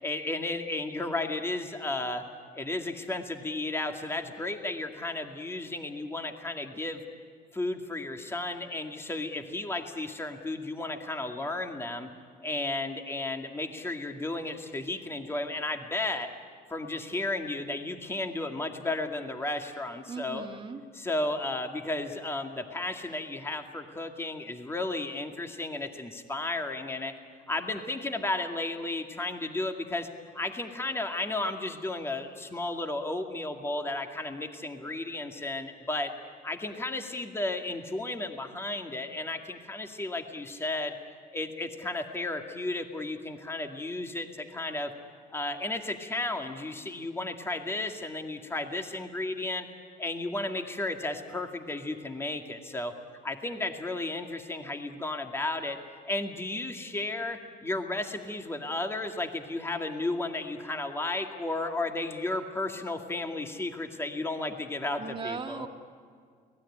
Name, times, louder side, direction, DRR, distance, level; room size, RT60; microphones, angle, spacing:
voice 1, 0.0-2.2 2.5-7.0 7.5-12.1 12.4-16.3 16.7-20.5 20.9-27.1 27.5-30.1 30.3-36.1 36.4-40.9 41.3-44.9 45.3-49.7 50.0-52.9 53.2-55.8 56.1-65.7, left 2 dB, 15° left, 4 dB, 2.2 m, -33 dB
voice 2, 20.1-20.8 65.0-65.7, right 5 dB, 30° right, 4 dB, 2.1 m, -38 dB
29.5 x 19.5 x 10.0 m, 2.1 s
cardioid pair, 110°, 17 cm